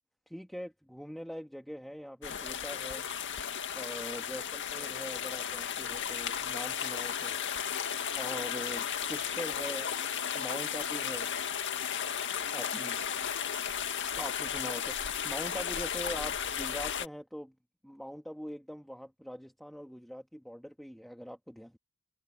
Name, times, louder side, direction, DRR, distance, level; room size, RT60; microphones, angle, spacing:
voice 1, 0.3-3.1 3.7-7.4 8.1-9.9 10.3-11.3 12.5-13.0 14.0-17.5 17.8-21.8, equal, ahead, 2.0 m, -42 dB
sound 1, 2.2-17.1, left 8 dB, 55° left, 2.0 m, -34 dB
head